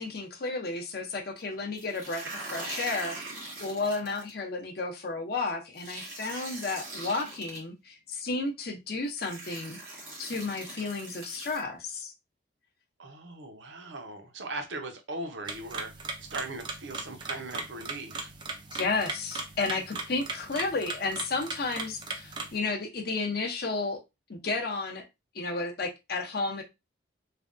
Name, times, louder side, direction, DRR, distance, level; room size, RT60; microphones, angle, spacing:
voice 1, 0.0-9.8 10.2-12.1 18.7-24.0 24.3-25.1 25.3-26.6, left 3 dB, 50° left, 0.6 m, -32 dB
sound 1, 1.8-4.3 5.8-7.6 8.6-8.7 9.2-11.6, right 2 dB, 85° right, 1.6 m, -41 dB
voice 2, 13.0-18.3, right 2 dB, 70° right, 0.7 m, -39 dB
sound 2, 15.5-22.6, right 3 dB, 25° right, 0.4 m, -38 dB
3.3 x 2.2 x 2.5 m
head